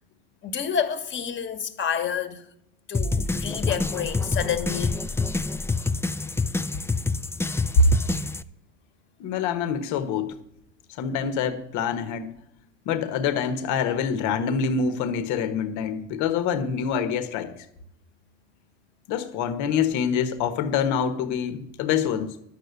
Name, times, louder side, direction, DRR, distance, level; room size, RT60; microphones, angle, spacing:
voice 1, 0.4-2.4 2.9-5.0, left 8 dB, 40° left, 1.4 m, -29 dB
sound 1, 2.9-8.4, left 3 dB, 10° left, 0.4 m, -27 dB
voice 2, 9.2-10.4 11.0-12.3 12.8-17.5 19.1-22.4, left 7 dB, 70° left, 1.3 m, -26 dB
11.0 x 6.8 x 8.1 m
supercardioid pair, 105°, 31 cm